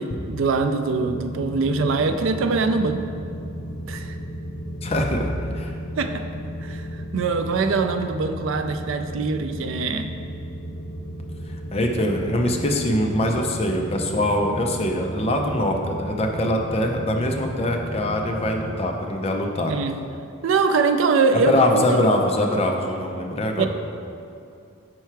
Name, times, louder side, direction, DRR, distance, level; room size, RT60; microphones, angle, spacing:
voice 1, 0.0-3.0 3.9-4.2 6.0-6.2 6.6-10.1 19.7-19.9 20.4-21.6 21.9-22.0 23.6-23.7, right 4 dB, 65° right, 8 dB, 0.4 m, -23 dB
sound 1, 0.9-18.8, equal, 80° left, 0.8 m, -34 dB
voice 2, 4.8-5.3 5.5-5.7 11.7-19.7 21.5-23.7, left 1 dB, 30° left, 2 dB, 0.5 m, -23 dB
5.7 x 4.5 x 4.5 m, 2.6 s
head